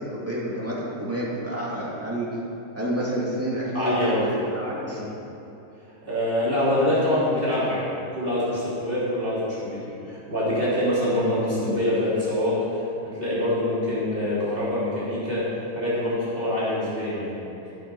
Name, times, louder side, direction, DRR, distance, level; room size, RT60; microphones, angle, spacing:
voice 1, 0.0-2.4 2.8-5.0, right 1 dB, 10° right, -6 dB, 2.4 m, -29 dB
voice 2, 3.7-4.2 4.9-5.0 6.0-9.8 10.0-15.4 15.7-17.3, left 1 dB, 35° right, -10 dB, 3.5 m, -25 dB
14.5 x 7.8 x 5.5 m, 3.0 s
omnidirectional pair, 1.6 m